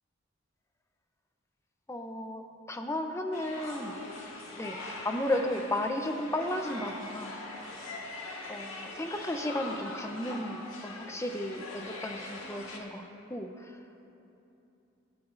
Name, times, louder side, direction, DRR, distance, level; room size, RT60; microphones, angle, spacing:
voice 1, 1.9-3.9 4.3-7.4 8.5-13.8, left 1 dB, 15° left, 5 dB, 0.7 m, -34 dB
sound 1, 3.3-12.8, left 2 dB, 90° left, 1.6 m, -42 dB
24.0 x 9.4 x 2.6 m, 2.9 s
head